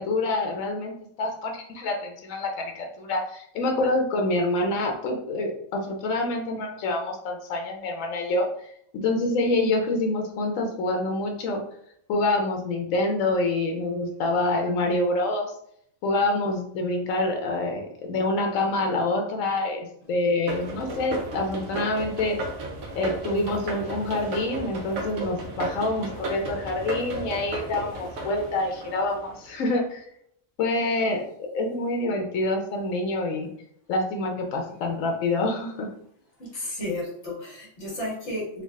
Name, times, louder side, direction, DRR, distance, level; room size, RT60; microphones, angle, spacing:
voice 1, 0.0-11.6 12.1-15.5 16.0-22.4 23.0-30.1 30.6-33.5 33.9-35.9, left 2 dB, 80° left, 3 dB, 1.1 m, -26 dB
sound 1, 20.5-29.6, right 2 dB, 90° right, 1.1 m, -34 dB
voice 2, 36.4-38.6, left 1 dB, 55° left, -4 dB, 1.7 m, -33 dB
3.6 x 2.3 x 3.5 m, 0.69 s
omnidirectional pair, 1.4 m